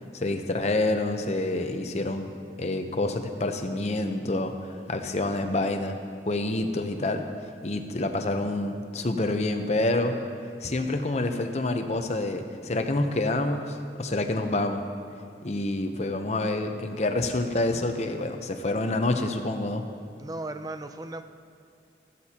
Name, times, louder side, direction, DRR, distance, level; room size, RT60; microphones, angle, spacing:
voice 1, 0.1-2.3 2.6-6.0 6.3-7.3 7.6-10.2 10.6-14.9 15.4-19.8, left 2 dB, 40° left, 5 dB, 0.7 m, -27 dB
voice 2, 20.2-21.2, right 2 dB, 20° right, 8 dB, 0.5 m, -36 dB
15.5 x 12.5 x 2.9 m, 2.4 s
head